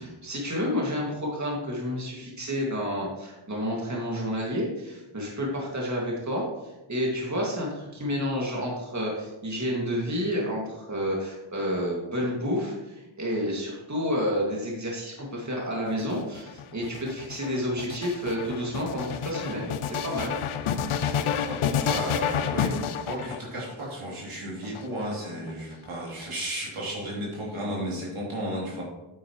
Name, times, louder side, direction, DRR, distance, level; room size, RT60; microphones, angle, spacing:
voice 1, 0.0-6.4 6.9-19.7 20.0-20.3, equal, 35° right, -3 dB, 2.3 m, -30 dB
sound 1, 15.9-23.8 24.6-25.5, left 8 dB, 85° left, 0.6 m, -30 dB
voice 2, 21.4-22.7 23.0-28.8, right 1 dB, 75° right, -4 dB, 3.2 m, -34 dB
8.9 x 8.5 x 3.2 m, 1.0 s
cardioid pair, 60°, 49 cm